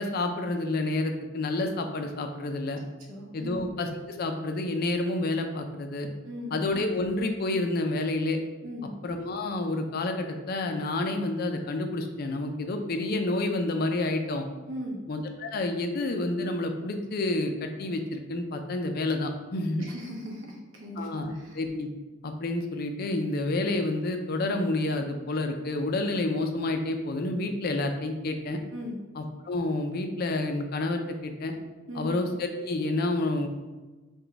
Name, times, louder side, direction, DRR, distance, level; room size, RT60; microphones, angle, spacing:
voice 1, 0.0-2.8 3.3-6.1 6.5-8.4 9.0-14.5 15.1-19.8 21.0-21.9 22.2-28.6 29.2-31.5 32.0-33.5, left 2 dB, 50° left, 5 dB, 0.4 m, -29 dB
voice 2, 3.1-3.6 6.2-6.6 8.6-8.9 14.7-15.0 19.8-21.6 28.7-29.0 31.9-32.2, left 1 dB, 70° right, -1 dB, 0.8 m, -38 dB
3.8 x 2.2 x 3.3 m, 1.2 s
head